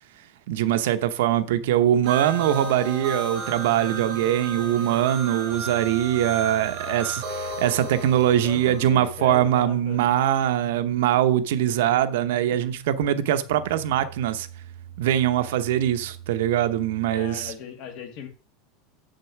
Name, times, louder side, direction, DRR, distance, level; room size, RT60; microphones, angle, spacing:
voice 1, 0.5-14.5 15.0-17.5, right 11 dB, 70° right, 0.8 m, -22 dB
sound 1, 1.5-17.5, right 6 dB, 10° right, 1.5 m, -44 dB
sound 2, 2.0-8.9, right 3 dB, 35° right, 3.8 m, -34 dB
voice 2, 8.4-10.0 14.0-14.1 17.1-18.3, left 7 dB, 40° left, 1.9 m, -37 dB
7.3 x 6.6 x 5.8 m
supercardioid pair, 180°, 0 cm